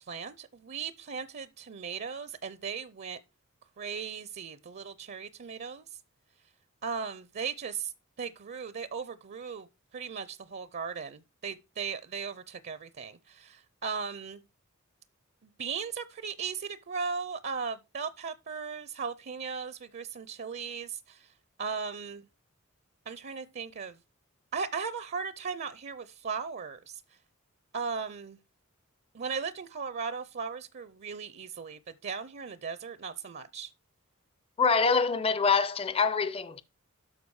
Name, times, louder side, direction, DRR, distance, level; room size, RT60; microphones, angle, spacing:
voice 1, 0.0-3.2 3.8-5.9 6.8-7.9 8.2-9.7 9.9-14.4 15.4-21.3 21.6-22.2 23.1-24.0 24.5-27.0 27.7-28.4 29.1-33.7, right 5 dB, 50° right, 0.5 m, -37 dB
voice 2, 34.6-36.6, left 5 dB, 25° left, 0.5 m, -25 dB
12.5 x 4.7 x 4.7 m
head